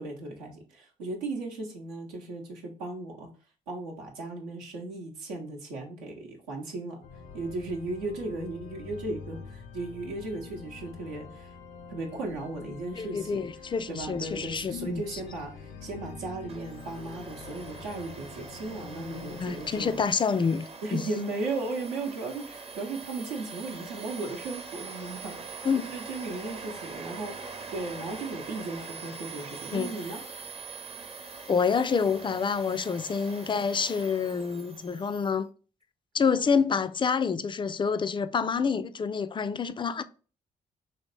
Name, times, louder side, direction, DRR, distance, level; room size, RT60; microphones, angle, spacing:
voice 1, 0.0-3.3 3.7-7.0 7.3-11.5 11.9-13.5 13.9-20.0 20.8-30.2, right 2 dB, 85° right, 0.8 m, -36 dB
sound 1, 7.0-20.1, left 5 dB, 75° left, 0.6 m, -46 dB
voice 2, 13.0-15.0 19.4-21.0 25.6-25.8 29.7-29.9 31.5-35.5 36.1-40.0, left 6 dB, 25° left, 0.4 m, -27 dB
Domestic sounds home sounds, 16.5-35.4, right 4 dB, 30° right, 0.6 m, -43 dB
2.9 x 2.7 x 3.2 m
hypercardioid pair, 45°, 19 cm